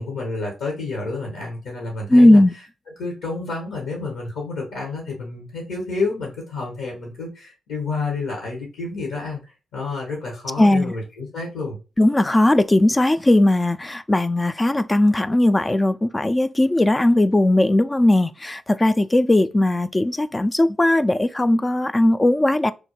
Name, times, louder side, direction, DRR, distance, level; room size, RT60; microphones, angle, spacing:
voice 1, 0.0-2.4 3.0-11.8, left 3 dB, 90° left, 1.1 m, -29 dB
voice 2, 2.1-2.5 10.6-10.9 12.0-22.7, left 1 dB, 20° left, 0.3 m, -18 dB
3.4 x 2.1 x 3.0 m
supercardioid pair, 55°, 0 cm